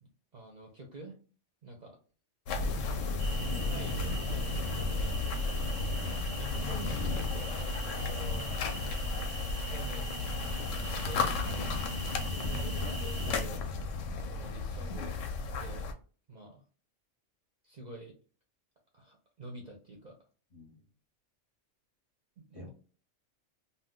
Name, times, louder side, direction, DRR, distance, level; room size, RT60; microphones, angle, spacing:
voice 1, 0.0-1.2 1.6-2.0 2.8-3.0 3.2-5.1 6.4-8.6 9.7-11.8 12.3-13.9 14.2-15.3 15.5-15.9 16.3-16.6 17.6-18.1 18.9-20.2 22.4-22.7, right 1 dB, 50° right, 0 dB, 0.6 m, -48 dB
sound 1, 2.5-15.9, left 3 dB, 90° left, 0.9 m, -33 dB
sound 2, 3.2-13.4, right 3 dB, 85° right, 1.0 m, -44 dB
voice 2, 5.5-6.3 12.0-12.2 20.5-20.8 22.5-22.7, left 1 dB, 35° left, -2 dB, 0.7 m, -48 dB
2.6 x 2.2 x 3.6 m, 0.39 s
omnidirectional pair, 1.3 m